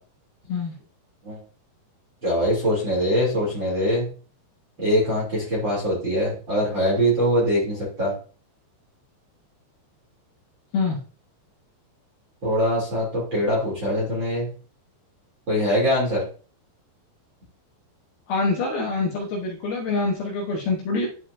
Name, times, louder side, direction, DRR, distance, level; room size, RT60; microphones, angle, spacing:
voice 1, 2.2-4.1 4.8-8.1 12.4-14.5 15.5-16.2, equal, 30° right, -6 dB, 2.8 m, -23 dB
voice 2, 18.3-21.1, left 3 dB, 70° left, -1 dB, 2.7 m, -25 dB
11.5 x 4.9 x 2.6 m, 0.38 s
omnidirectional pair, 5.1 m